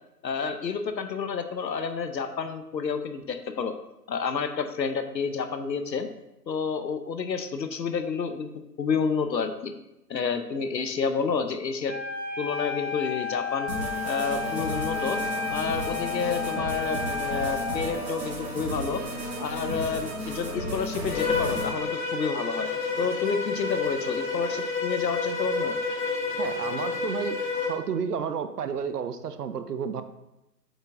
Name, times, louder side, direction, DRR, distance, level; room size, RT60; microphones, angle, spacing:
voice 1, 0.2-3.7 4.1-6.1 6.5-8.5 8.8-9.7 10.1-12.0 12.4-13.7 14.0-15.2 15.5-19.0 19.4-22.7 23.0-25.8, left 5 dB, 90° left, 8 dB, 0.9 m, -29 dB
Wind instrument woodwind instrument, 11.9-17.8, left 5 dB, 85° right, 2.3 m, -32 dB
sound 1, 13.7-21.7, right 1 dB, 25° right, 2.3 m, -33 dB
Bowed string instrument, 21.1-27.8, left 4 dB, 30° left, 1.1 m, -29 dB
voice 2, 26.4-27.4 27.7-30.0, right 6 dB, 65° right, 11 dB, 0.7 m, -31 dB
7.8 x 4.5 x 3.8 m, 0.93 s
hypercardioid pair, 150°, 50 cm